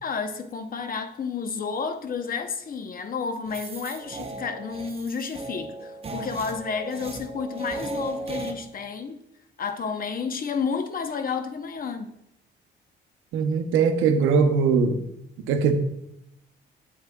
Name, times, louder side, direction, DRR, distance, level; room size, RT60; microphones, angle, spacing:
voice 1, 0.0-9.2 9.6-12.2, left 5 dB, 45° left, 7 dB, 0.8 m, -31 dB
sound 1, 3.5-8.5, right 2 dB, 30° right, 0.8 m, -36 dB
voice 2, 13.3-15.0 15.5-15.7, right 5 dB, 90° right, 8 dB, 0.7 m, -21 dB
8.0 x 7.5 x 2.3 m, 0.81 s
cardioid pair, 90°, 20 cm